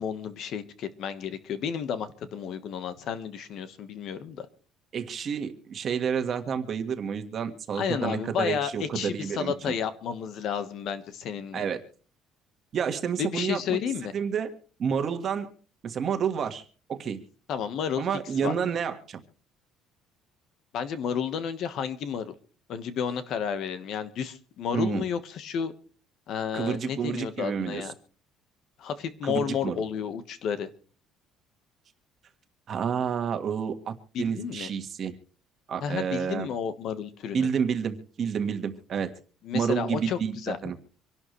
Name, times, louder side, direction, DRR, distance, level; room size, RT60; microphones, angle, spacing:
voice 1, 0.0-4.5 7.8-11.6 13.2-14.1 17.5-18.0 18.4-18.5 20.7-22.3 22.7-25.7 26.3-27.9 28.8-30.7 34.1-34.7 35.8-37.5 39.4-40.6, left 7 dB, 55° left, 11 dB, 1.3 m, -31 dB
voice 2, 4.9-9.7 11.5-11.8 12.7-13.8 14.1-15.5 15.8-16.6 16.9-17.2 18.0-19.2 24.7-25.0 26.5-27.9 29.2-29.8 32.7-35.1 35.7-36.5 37.3-39.1 39.5-40.7, right 7 dB, 35° right, 7 dB, 1.6 m, -29 dB
25.5 x 11.5 x 3.2 m, 0.40 s
cardioid pair, 155°, 0 cm